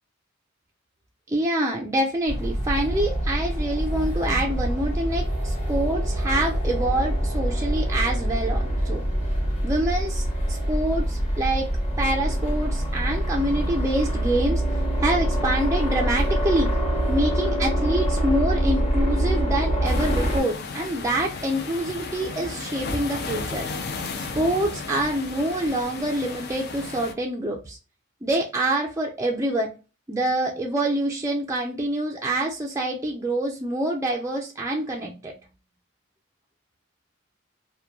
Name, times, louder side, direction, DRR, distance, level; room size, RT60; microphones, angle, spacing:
voice 1, 1.3-9.0 9.6-11.7 12.0-14.6 15.0-16.7 17.1-23.7 24.3-27.8 28.2-29.7 30.1-35.3, right 1 dB, 15° right, -1 dB, 0.3 m, -26 dB
sound 1, 2.3-20.4, right 1 dB, 35° left, 1.1 m, -25 dB
sound 2, 19.8-27.1, left 4 dB, 55° left, 0.4 m, -34 dB
2.9 x 2.1 x 2.3 m, 0.31 s
head